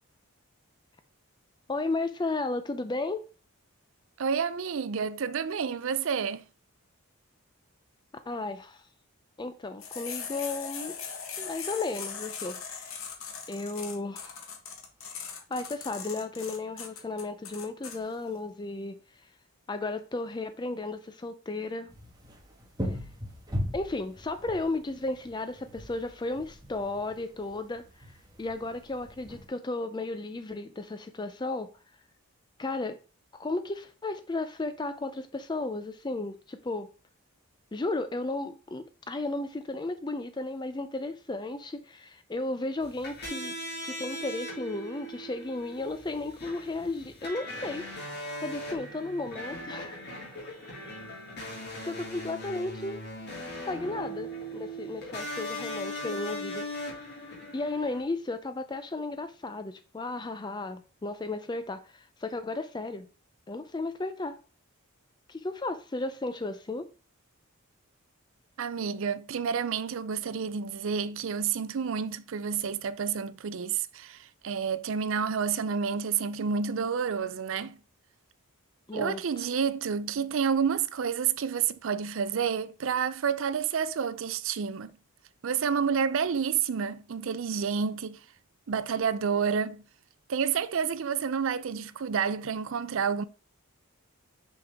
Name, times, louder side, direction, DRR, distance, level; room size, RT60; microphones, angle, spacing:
voice 1, 1.7-3.2 8.3-8.9 9.4-10.9 11.4-13.0 13.5-14.5 15.3-19.0 19.7-21.9 22.9-23.0 23.7-31.7 32.6-33.0 33.3-36.9 37.7-43.5 43.8-47.9 48.4-50.0 51.8-53.0 53.7-56.7 57.5-63.1 63.5-64.4 65.3-66.9 78.9-79.4, left 2 dB, 20° left, 0.4 m, -34 dB
voice 2, 4.2-6.4 68.6-77.8 78.9-84.9 85.4-88.2 88.7-89.8 90.3-93.2, right 6 dB, 60° right, 0.4 m, -29 dB
sound 1, 9.8-18.0, left 6 dB, 65° left, 1.4 m, -39 dB
sound 2, 21.9-29.5, equal, 15° right, 1.3 m, -39 dB
sound 3, 42.8-58.0, equal, 50° left, 2.6 m, -39 dB
6.4 x 5.2 x 3.5 m
head